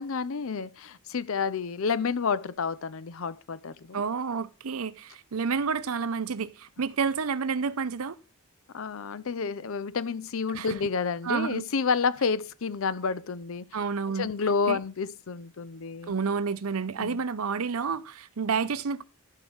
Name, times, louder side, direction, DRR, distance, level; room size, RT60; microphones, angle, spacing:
voice 1, 0.0-4.0 8.7-13.7 14.1-16.1 17.0-17.2, left 5 dB, 70° left, 0.6 m, -30 dB
voice 2, 3.9-8.2 10.5-10.8 11.2-11.6 13.7-14.3 14.7-14.8 16.1-19.0, right 5 dB, 85° right, 0.6 m, -29 dB
12.5 x 5.3 x 6.2 m
head